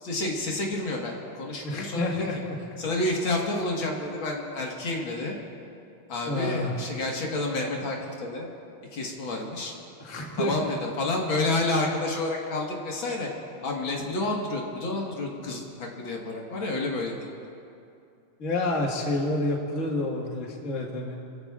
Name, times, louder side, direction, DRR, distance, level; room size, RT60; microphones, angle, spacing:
voice 1, 0.0-2.2 2.8-5.4 6.1-8.5 8.9-9.7 10.4-13.3 13.6-17.3, left 2 dB, 70° left, -1 dB, 2.3 m, -29 dB
voice 2, 1.6-2.6 6.3-6.8 10.0-10.5 18.4-21.2, left 2 dB, 40° left, -2 dB, 1.9 m, -29 dB
28.0 x 15.0 x 2.4 m, 2.5 s
omnidirectional pair, 2.3 m